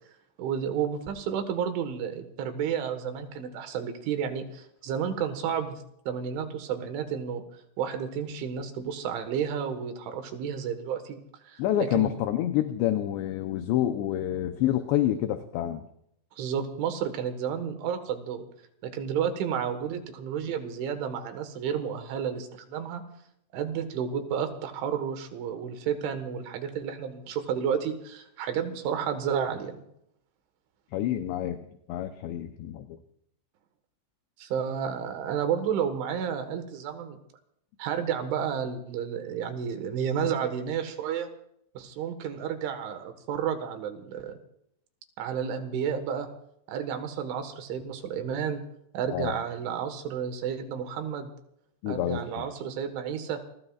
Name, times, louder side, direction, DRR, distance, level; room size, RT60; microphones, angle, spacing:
voice 1, 0.4-7.4 7.8-11.2 11.4-12.1 16.4-18.5 18.8-23.0 23.5-29.8 34.4-37.2 37.8-41.3 41.8-44.3 45.2-46.3 46.7-48.6 48.9-51.3 51.9-53.4, right 8 dB, 80° right, 7 dB, 3.9 m, -31 dB
voice 2, 11.6-15.8 30.9-31.6 31.9-33.0 49.1-49.3 51.8-52.2, left 12 dB, 75° left, 7 dB, 2.8 m, -27 dB
28.5 x 21.0 x 2.5 m, 0.73 s
omnidirectional pair, 5.5 m